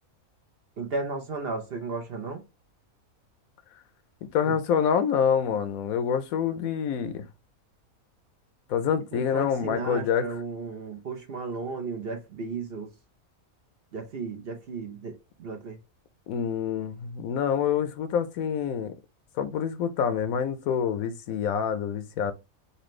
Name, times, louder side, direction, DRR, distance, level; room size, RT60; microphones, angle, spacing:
voice 1, 0.8-2.4 4.5-4.6 9.1-12.9 13.9-15.8, right 4 dB, 50° right, 0.8 m, -34 dB
voice 2, 4.3-7.2 8.7-10.2 16.3-18.9 19.4-22.3, left 7 dB, 75° left, 1.1 m, -26 dB
4.3 x 2.7 x 3.1 m
omnidirectional pair, 1.5 m